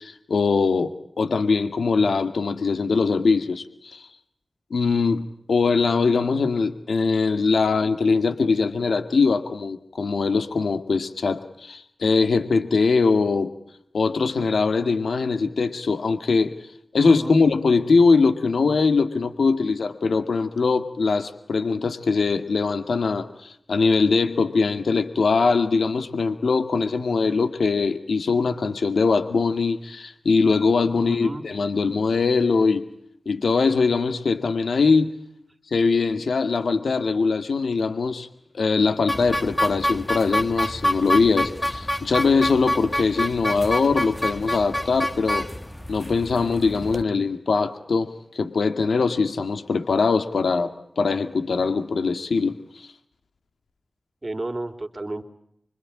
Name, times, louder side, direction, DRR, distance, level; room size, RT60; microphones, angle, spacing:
voice 1, 0.0-4.1 4.7-13.5 13.9-16.5 16.9-32.9 33.3-35.1 35.7-38.3 38.5-45.5 45.9-52.9, left 4 dB, 90° left, 9 dB, 2.1 m, -22 dB
voice 2, 17.0-17.4 30.9-31.4 54.2-55.2, right 2 dB, 30° right, 7 dB, 3.4 m, -32 dB
sound 1, 39.1-47.0, equal, 15° left, 1.6 m, -27 dB
26.5 x 24.5 x 8.7 m, 0.72 s
wide cardioid pair, 65°, 0 cm